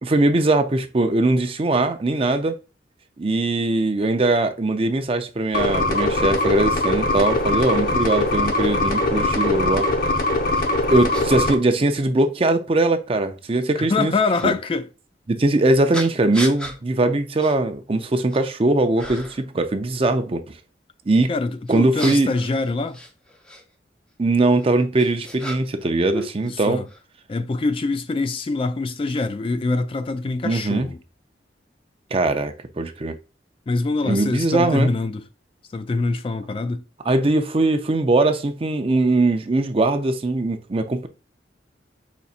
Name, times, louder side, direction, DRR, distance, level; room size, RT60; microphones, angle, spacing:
voice 1, 0.0-2.6 3.2-9.9 10.9-14.1 14.4-14.5 15.3-20.6 21.1-21.3 21.7-22.3 24.2-26.8 30.4-30.9 32.1-33.1 34.0-34.9 37.1-41.1, right 2 dB, 30° right, 0.5 m, -21 dB
sound 1, 5.5-11.5, left 2 dB, 55° left, 0.8 m, -21 dB
cry man, 10.5-10.6 11.1-11.3 12.1-12.2 14.3-14.5 15.9-16.8 17.4-17.6 18.0-18.5 19.0-19.5 21.7-23.6 24.6-25.9 26.1-27.0, equal, 5° left, 0.7 m, -34 dB
voice 2, 13.8-14.9 21.3-23.0 26.4-26.9 27.3-31.0 33.7-35.2 35.7-36.8, left 3 dB, 30° left, 0.3 m, -24 dB
5.2 x 4.1 x 2.4 m
head